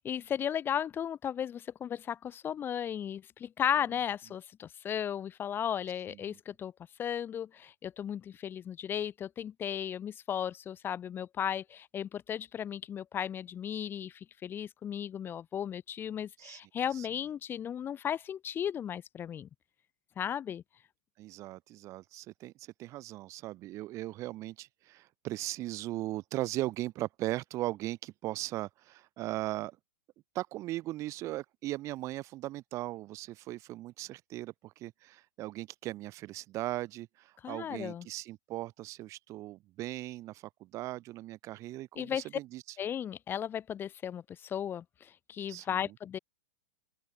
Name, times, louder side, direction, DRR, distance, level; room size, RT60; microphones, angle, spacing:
voice 1, 0.0-6.7 7.0-19.5 20.2-20.6 37.4-38.0 42.0-42.2 42.8-46.2, left 9 dB, 25° left, 2.2 m, -35 dB
voice 2, 21.2-29.8 30.3-42.8 45.5-45.9, right 16 dB, 35° right, 1.1 m, -38 dB
open air
hypercardioid pair, 110°, 9 cm